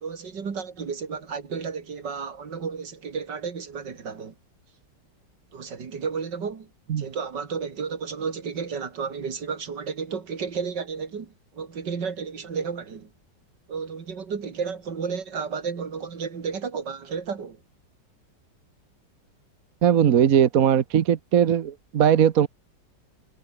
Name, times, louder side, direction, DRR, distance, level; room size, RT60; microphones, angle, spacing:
voice 1, 0.0-4.3 5.5-6.7 7.0-13.1 13.7-17.6, right 6 dB, 75° right, 2.9 m, -32 dB
voice 2, 19.8-22.5, right 9 dB, 55° right, 1.3 m, -19 dB
omnidirectional pair, 1.9 m